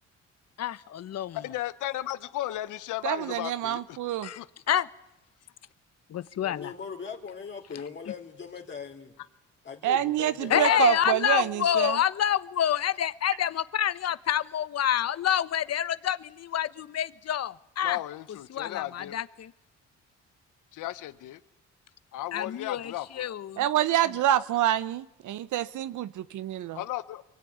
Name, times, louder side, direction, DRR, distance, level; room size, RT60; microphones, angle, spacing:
voice 1, 0.6-1.4 4.2-4.4 4.7-4.9 6.1-6.7 10.5-18.0 18.5-19.5 22.3-23.6, left 10 dB, 55° left, 1.0 m, -27 dB
voice 2, 1.4-4.0 4.4-4.5 10.5-10.8 17.8-19.2 20.7-21.4 22.1-23.3 26.7-27.2, left 14 dB, 85° left, 1.0 m, -34 dB
voice 3, 3.0-4.3 9.8-12.0 23.6-26.8, right 12 dB, 75° right, 0.9 m, -27 dB
voice 4, 6.4-9.2 9.6-10.5, left 6 dB, 40° left, 3.1 m, -40 dB
24.0 x 17.0 x 9.4 m
cardioid pair, 90°, 30 cm